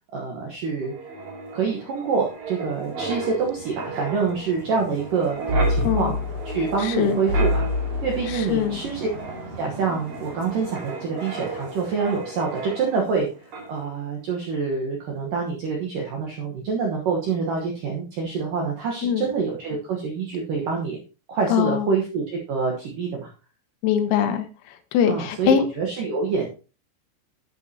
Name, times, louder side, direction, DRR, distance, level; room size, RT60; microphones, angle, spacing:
voice 1, 0.1-0.9 1.5-6.1 6.5-7.7 8.0-9.1 9.6-21.0 21.3-23.3 25.1-26.5, right 5 dB, 75° right, 0 dB, 2.0 m, -26 dB
Wind, 0.8-13.2 13.5-13.8, equal, 45° right, 3.4 m, -30 dB
voice 2, 5.9-6.2 6.8-7.2 8.3-8.8 19.0-19.3 21.5-21.9 23.8-25.6, left 9 dB, 85° left, 8 dB, 3.7 m, -22 dB
10.5 x 8.2 x 2.9 m, 0.33 s
omnidirectional pair, 6.0 m